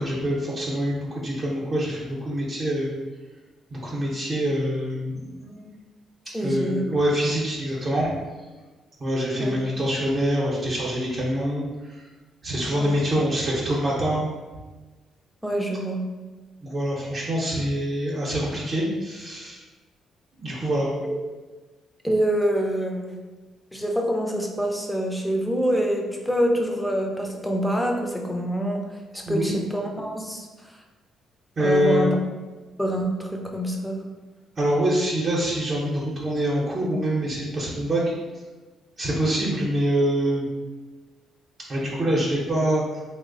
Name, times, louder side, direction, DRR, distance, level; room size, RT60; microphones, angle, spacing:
voice 1, 0.0-2.9 3.7-5.8 6.4-8.1 9.0-12.0 12.4-14.3 16.6-19.6 20.3-20.9 29.3-29.5 31.6-32.1 34.6-38.1 39.0-40.5 41.7-43.0, right 1 dB, 40° right, -5 dB, 0.7 m, -25 dB
voice 2, 6.3-6.8 9.4-9.6 12.8-13.0 15.4-16.0 21.0-21.1 22.0-23.1 23.7-30.5 31.6-32.2 32.8-34.0, equal, ahead, 1 dB, 0.5 m, -26 dB
3.0 x 2.1 x 3.7 m, 1.2 s
cardioid pair, 90°, 0 cm